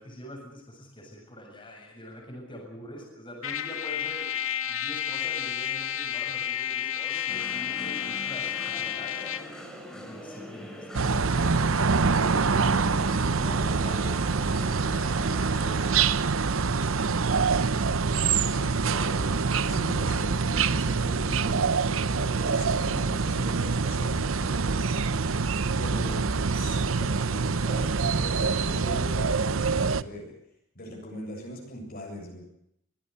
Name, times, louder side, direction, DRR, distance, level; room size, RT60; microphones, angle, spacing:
voice 1, 0.0-4.3 4.7-9.2 9.9-14.3 15.0-17.5, equal, 25° left, 0 dB, 7.3 m, -44 dB
Trumpet, 3.4-9.6, left 10 dB, 75° left, 1.9 m, -31 dB
sound 1, 7.3-16.1, equal, 5° left, 5.2 m, -42 dB
sound 2, 10.9-30.0, right 4 dB, 70° right, 0.8 m, -25 dB
voice 2, 18.4-25.0 25.8-26.3 26.5-30.3 30.7-32.5, left 1 dB, 45° left, 1 dB, 7.6 m, -40 dB
24.0 x 18.5 x 8.5 m, 0.77 s
head